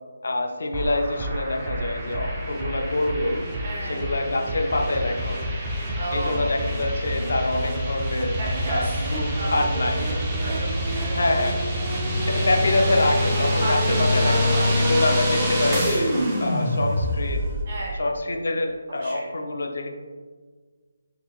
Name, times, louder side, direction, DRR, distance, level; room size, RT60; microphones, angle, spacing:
voice 1, 0.2-3.5 3.9-5.4 6.1-8.4 8.7-8.9 9.1-10.1 11.1-11.6 12.3-16.1 16.4-17.4 18.0-19.9, left 2 dB, 60° left, 3 dB, 0.4 m, -25 dB
sound 1, 0.7-17.6, equal, 10° right, 0.3 m, -26 dB
voice 2, 3.6-4.0 6.0-6.5 8.4-11.6 13.6-14.9 16.1-16.2 17.7-18.0 18.9-19.2, right 1 dB, 30° right, -4 dB, 0.7 m, -33 dB
3.9 x 2.8 x 2.3 m, 1.5 s
hypercardioid pair, 175°, 0 cm